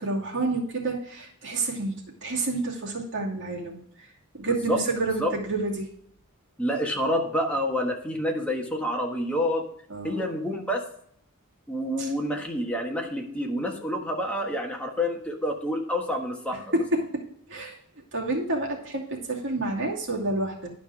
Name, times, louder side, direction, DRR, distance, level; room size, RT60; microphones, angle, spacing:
voice 1, 0.0-1.9 2.2-3.8 4.3-5.9 9.9-10.3 12.0-12.1 16.7-17.0 17.5-17.7 18.1-20.7, right 2 dB, 60° right, -2 dB, 2.5 m, -29 dB
voice 2, 6.6-9.6 10.0-10.8 11.7-16.6, equal, 5° left, 0 dB, 1.4 m, -28 dB
11.0 x 5.1 x 4.9 m, 0.67 s
head